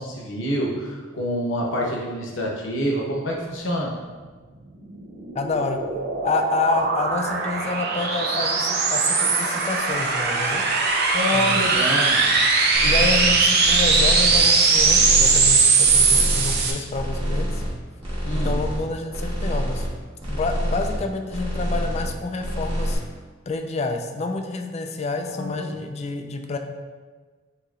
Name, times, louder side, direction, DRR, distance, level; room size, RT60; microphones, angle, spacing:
voice 1, 0.0-3.9 11.1-12.2 18.2-18.5 25.3-25.7, equal, 70° left, -2 dB, 0.9 m, -27 dB
sound 1, 4.9-16.7, right 4 dB, 55° right, 0.5 m, -20 dB
voice 2, 5.3-5.8 6.2-10.6 11.3-11.7 12.8-17.6 18.3-19.9 20.3-23.0 23.5-26.6, left 3 dB, 35° left, 5 dB, 0.3 m, -28 dB
sound 2, 12.7-13.3 13.6-14.4 14.7-15.5 15.8-16.6 16.9-17.7 18.0-18.8 19.1-19.9 20.2-21.0 21.3-22.1 22.4-23.0, equal, 25° right, 1.3 m, -27 dB
6.5 x 2.9 x 2.4 m, 1.4 s
head